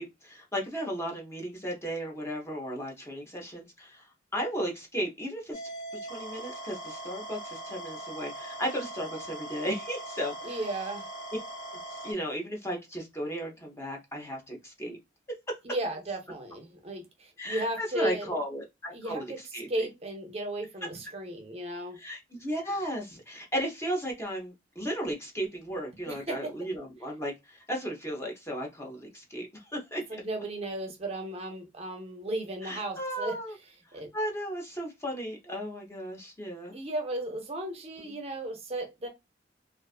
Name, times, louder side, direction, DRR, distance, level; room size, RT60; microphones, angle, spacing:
voice 1, 0.0-4.1 4.3-5.6 6.1-10.5 11.3-11.4 11.9-15.0 17.4-19.3 19.5-19.7 22.0-30.0 32.6-33.5 34.1-36.7 38.0-38.1, equal, 15° left, 0.6 m, -35 dB
sound 1, 5.5-12.1, right 1 dB, 80° left, 1.1 m, -41 dB
voice 2, 10.4-11.1 15.6-18.3 18.9-19.4 19.7-22.0 26.1-26.5 30.1-33.4 33.9-34.1 36.7-39.1, right 1 dB, 35° right, 0.5 m, -35 dB
2.4 x 2.3 x 2.3 m
head